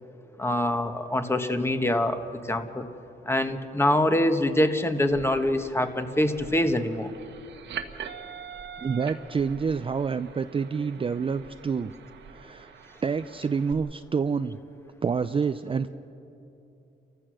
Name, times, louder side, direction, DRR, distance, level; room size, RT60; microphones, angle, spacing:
voice 1, 0.4-2.2 2.5-2.8 3.3-7.1, left 1 dB, 10° left, 7 dB, 1.4 m, -24 dB
sound 1, 5.0-13.7, right 7 dB, 65° right, 1.4 m, -44 dB
voice 2, 8.8-11.9 12.3-12.7 13.0-14.6 15.0-15.9, right 5 dB, 25° right, 10 dB, 0.5 m, -28 dB
30.0 x 15.0 x 6.4 m, 2.8 s
cardioid pair, 90°, 20 cm